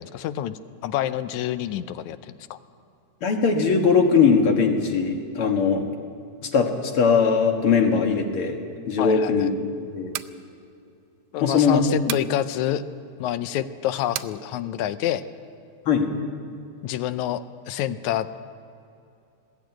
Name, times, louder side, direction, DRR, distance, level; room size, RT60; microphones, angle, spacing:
voice 1, 0.0-2.6 9.0-9.5 11.3-12.8 13.2-15.2 16.8-18.3, left 11 dB, 80° left, 13 dB, 2.1 m, -28 dB
voice 2, 3.2-5.8 6.5-8.6 8.9-10.1 11.4-11.8 12.1-12.2 15.9-16.1, left 5 dB, 50° left, 3 dB, 2.3 m, -20 dB
sound 1, 9.9-10.4 12.1-12.3 14.1-14.4, right 14 dB, 80° right, 1.6 m, -32 dB
20.5 x 14.5 x 9.0 m, 2.6 s
omnidirectional pair, 3.4 m